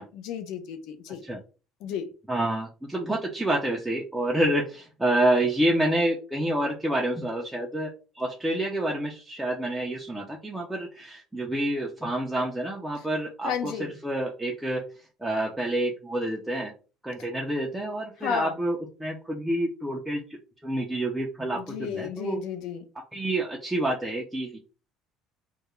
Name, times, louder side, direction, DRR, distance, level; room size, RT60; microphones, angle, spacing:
voice 1, 0.0-1.2 1.8-2.1 13.0-13.1 13.4-13.9 18.2-18.5 21.5-22.8, left 7 dB, 65° left, 0.4 m, -33 dB
voice 2, 2.3-14.8 15.2-16.7 17.0-20.2 20.6-22.4 23.1-24.6, right 1 dB, 5° right, 0.4 m, -28 dB
2.3 x 2.0 x 2.9 m
cardioid pair, 145°, 0 cm